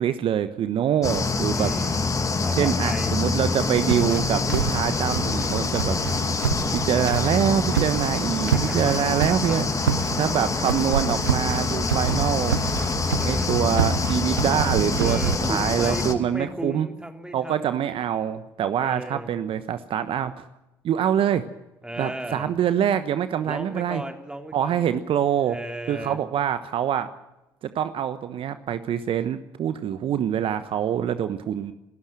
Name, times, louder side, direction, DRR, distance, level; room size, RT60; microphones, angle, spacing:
voice 1, 0.0-1.7 2.6-6.0 6.7-9.7 10.2-12.6 13.2-16.9 17.3-20.4 20.8-21.4 22.0-24.0 24.5-25.6 25.9-27.1 27.7-31.7, right 9 dB, 50° right, 11 dB, 1.1 m, -25 dB
sound 1, 1.0-16.1, left 4 dB, 30° left, 2.5 m, -25 dB
voice 2, 1.5-2.1 2.4-3.1 8.5-9.6 10.0-10.2 13.2-13.7 15.0-17.8 18.8-19.4 21.8-22.6 23.4-24.9 25.4-26.2, right 1 dB, 5° right, 5 dB, 3.2 m, -36 dB
sound 2, 3.5-15.4, right 8 dB, 85° right, 0.7 m, -29 dB
27.0 x 13.0 x 7.5 m, 0.98 s
hypercardioid pair, 55°, 11 cm